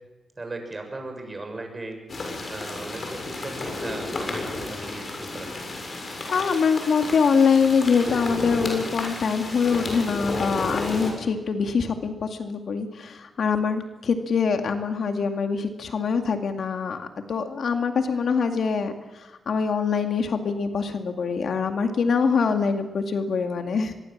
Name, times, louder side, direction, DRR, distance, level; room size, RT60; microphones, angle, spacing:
voice 1, 0.4-2.0 2.5-4.1 4.5-5.5, right 2 dB, 30° right, 5 dB, 6.6 m, -37 dB
sound 1, 2.1-11.1, left 2 dB, 50° left, 7.2 m, -32 dB
voice 2, 6.3-23.9, left 5 dB, 70° left, 6 dB, 2.2 m, -24 dB
24.5 x 21.5 x 7.4 m, 1.2 s
cardioid pair, 85°, 0 cm